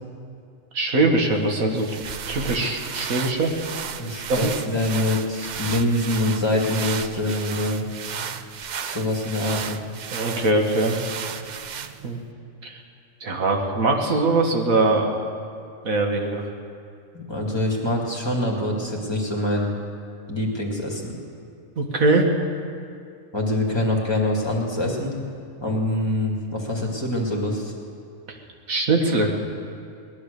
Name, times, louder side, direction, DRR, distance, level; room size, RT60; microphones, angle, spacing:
voice 1, 0.7-1.9 2.3-3.5 4.3-4.5 10.1-11.0 12.0-12.2 12.6-12.8 13.2-15.1 15.8-16.5 21.8-22.3 28.7-29.3, right 2 dB, 90° right, 2 dB, 2.0 m, -21 dB
sound 1, 1.6-12.2, right 7 dB, 60° right, 0.4 m, -34 dB
voice 2, 4.0-7.8 8.8-9.8 17.1-19.7 20.3-21.1 23.3-25.1 25.6-27.7, left 1 dB, 20° left, -2 dB, 2.3 m, -25 dB
19.0 x 11.0 x 6.8 m, 2.4 s
omnidirectional pair, 1.4 m